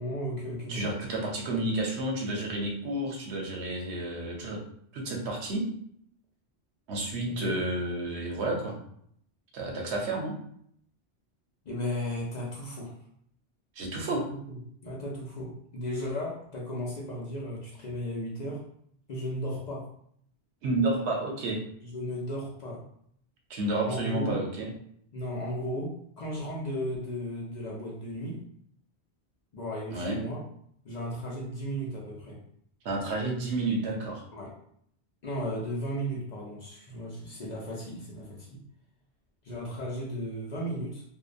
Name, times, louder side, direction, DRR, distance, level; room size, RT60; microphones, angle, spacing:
voice 1, 0.0-0.8 7.2-7.6 11.6-12.9 14.1-18.6 19.1-19.8 21.8-22.8 23.8-24.4 25.1-28.4 29.5-30.4 30.8-32.4 34.3-34.5 35.2-38.6 39.4-41.0, equal, 50° left, -4 dB, 0.5 m, -35 dB
voice 2, 0.7-4.6 4.9-5.7 6.9-8.8 9.5-10.3 13.8-14.2 20.6-21.6 23.5-24.7 29.9-30.2 32.8-34.2, right 2 dB, 85° right, 0 dB, 1.0 m, -30 dB
2.7 x 2.1 x 2.5 m, 0.67 s
omnidirectional pair, 1.1 m